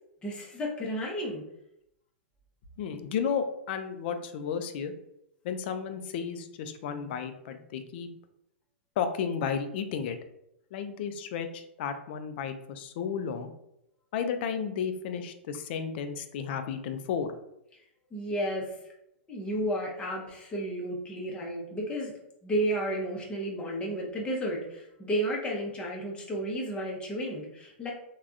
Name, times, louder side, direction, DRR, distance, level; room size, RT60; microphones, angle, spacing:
voice 1, 0.2-1.4 18.1-18.8 19.3-22.1 22.4-27.9, right 1 dB, 15° left, -3 dB, 0.7 m, -32 dB
voice 2, 2.8-4.9 5.4-8.1 9.0-10.2 10.7-13.5 14.1-17.3, left 7 dB, 60° left, 8 dB, 0.4 m, -33 dB
3.3 x 2.2 x 2.5 m, 0.80 s
hypercardioid pair, 115°, 7 cm